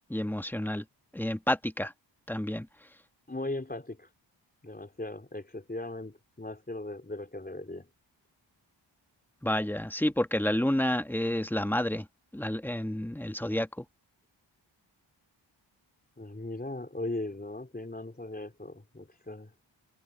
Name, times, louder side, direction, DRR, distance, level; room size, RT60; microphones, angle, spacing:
voice 1, 0.1-0.8 1.1-1.9 2.3-2.7 9.4-12.1 12.3-13.8, left 1 dB, 5° left, 1.4 m, -29 dB
voice 2, 3.3-4.1 4.6-7.9 16.2-19.5, left 2 dB, 20° left, 4.3 m, -38 dB
cardioid pair, 55°, 45 cm